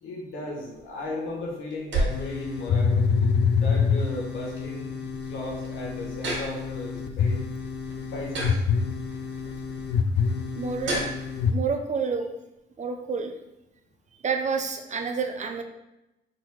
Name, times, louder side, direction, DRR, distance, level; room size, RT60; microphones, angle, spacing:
voice 1, 0.0-7.4 8.1-8.6, left 1 dB, 80° left, -1 dB, 1.3 m, -36 dB
sound 1, 0.7-11.5, right 2 dB, 70° right, 1.4 m, -36 dB
sound 2, 2.1-11.5, left 5 dB, 60° left, 0.5 m, -27 dB
voice 2, 10.6-11.0 11.5-12.3 12.8-13.3 14.2-15.6, right 5 dB, 35° right, 5 dB, 0.5 m, -28 dB
4.0 x 2.7 x 4.4 m, 0.93 s
cardioid pair, 90°, 20 cm